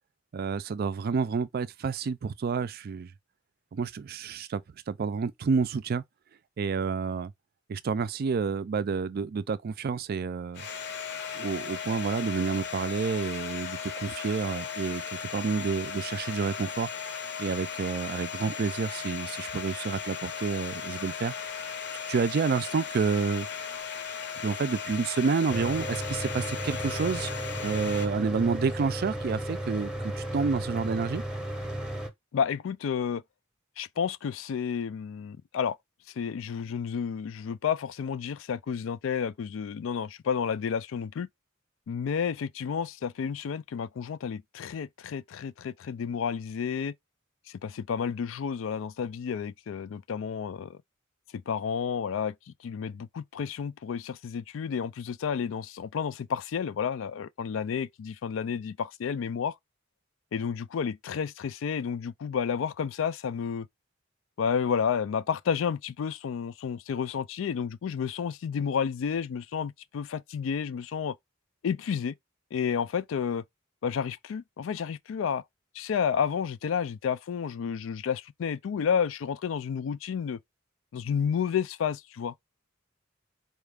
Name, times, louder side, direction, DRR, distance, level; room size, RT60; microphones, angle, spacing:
voice 1, 0.3-3.1 3.7-4.6 4.9-6.0 6.6-7.3 7.7-10.6 11.3-16.9 17.4-21.3 22.1-23.5 24.4-27.3 27.6-31.2, right 5 dB, 50° right, 0.4 m, -29 dB
Domestic sounds home sounds, 10.6-28.1, left 7 dB, 60° left, 0.7 m, -37 dB
Mechanical fan, 25.5-32.1, right 1 dB, 5° right, 0.8 m, -34 dB
voice 2, 32.3-33.2 33.8-35.8 36.2-41.3 41.9-46.9 47.6-50.8 51.3-59.6 60.3-63.7 64.4-71.2 71.6-72.1 72.5-73.4 73.8-75.4 75.7-80.4 80.9-82.3, left 7 dB, 75° left, 0.3 m, -31 dB
4.4 x 2.4 x 3.3 m
head